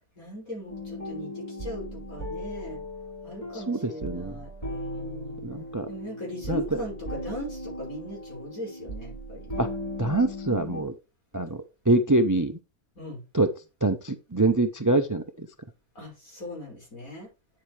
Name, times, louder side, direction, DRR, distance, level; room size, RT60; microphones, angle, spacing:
voice 1, 0.2-2.8 3.2-5.4 5.9-9.7 13.0-13.2 16.0-17.3, left 1 dB, 70° left, -2 dB, 5.9 m, -39 dB
sound 1, 0.7-10.8, equal, 25° left, 4.3 m, -37 dB
voice 2, 3.5-4.3 5.4-5.9 6.5-6.8 9.6-9.7 10.0-10.9 11.3-12.6 13.3-13.5 13.8-15.5, right 2 dB, 20° right, 9 dB, 0.6 m, -25 dB
9.6 x 7.6 x 3.3 m, 0.29 s
omnidirectional pair, 1.5 m